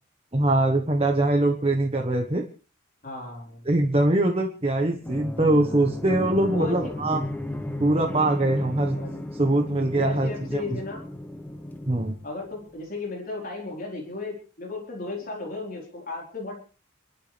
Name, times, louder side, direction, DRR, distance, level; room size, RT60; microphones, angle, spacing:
voice 1, 0.3-2.4 3.7-7.2 7.8-9.0 9.3-10.8 11.9-12.2, right 2 dB, 30° right, 3 dB, 1.3 m, -23 dB
voice 2, 3.0-3.7 6.4-6.9 8.8-9.2 9.9-11.0 12.2-16.6, left 3 dB, 45° left, -1 dB, 4.5 m, -35 dB
sound 1, 5.0-12.6, left 1 dB, 10° left, 1.2 m, -34 dB
29.5 x 12.5 x 3.5 m, 0.37 s
head